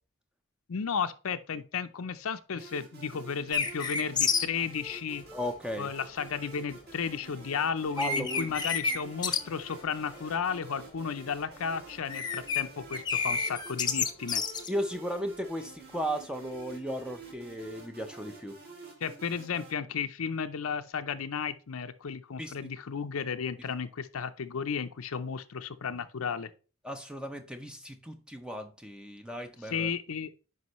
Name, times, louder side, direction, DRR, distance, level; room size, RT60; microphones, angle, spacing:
voice 1, 0.7-5.2 5.8-14.4 19.0-26.5 29.6-30.3, left 6 dB, 80° left, 0.6 m, -34 dB
sound 1, 2.6-19.7, right 3 dB, 45° right, 3.3 m, -50 dB
sound 2, 3.5-4.5 7.5-7.6 8.0-9.0 9.2-9.4 9.7-10.3 10.6-10.8 11.9-12.6 12.9-14.7, left 5 dB, 20° left, 0.8 m, -29 dB
voice 2, 5.3-5.9 8.0-8.5 14.7-18.6 22.4-22.5 26.8-29.9, equal, 5° right, 0.5 m, -35 dB
9.5 x 5.3 x 3.0 m
head